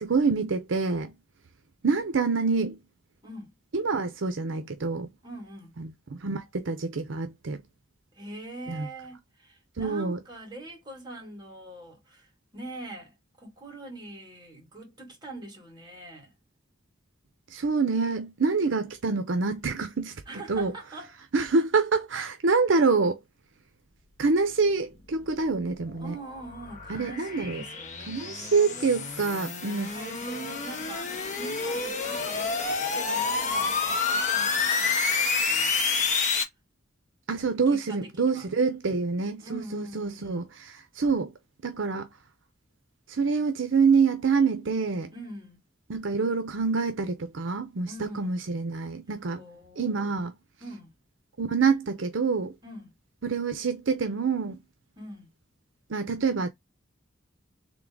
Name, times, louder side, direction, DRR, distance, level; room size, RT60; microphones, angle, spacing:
voice 1, 0.0-1.1 1.8-2.8 3.7-5.1 5.8-7.6 8.7-8.9 9.8-10.2 17.5-20.2 20.5-20.7 21.3-23.2 24.2-26.1 26.9-27.6 28.1-29.9 37.3-41.3 41.6-42.1 43.1-45.1 45.9-49.4 49.8-50.3 51.4-52.5 53.2-54.6 55.9-56.5, right 4 dB, 70° right, 0.6 m, -26 dB
voice 2, 3.2-3.5 5.2-5.8 8.1-16.3 20.3-21.1 26.0-28.9 29.9-36.2 37.7-38.5 39.4-40.4 45.1-45.6 47.9-48.3 49.3-50.1 50.6-50.9 52.6-52.9 55.0-55.3, right 2 dB, 20° right, 2.5 m, -43 dB
sound 1, 25.1-36.4, left 4 dB, 40° left, 0.9 m, -29 dB
3.7 x 3.3 x 3.7 m
head